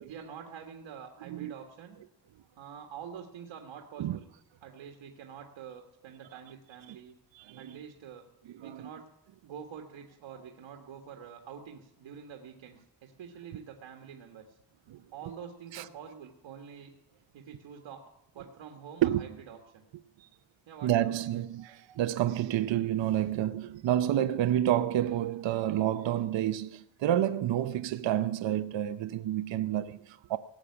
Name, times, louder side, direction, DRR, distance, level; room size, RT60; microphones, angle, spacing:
voice 1, 0.0-2.0 2.6-4.3 4.6-7.1 7.6-8.3 8.6-9.1 9.4-14.6 15.1-16.9 17.3-19.8 20.7-21.5, right 7 dB, 90° right, 1.7 m, -46 dB
voice 2, 7.3-7.8 8.6-8.9 14.9-15.0 15.7-15.9 19.0-19.2 20.8-30.4, right 12 dB, 70° right, 0.8 m, -29 dB
18.0 x 7.4 x 9.7 m
wide cardioid pair, 145°, 46 cm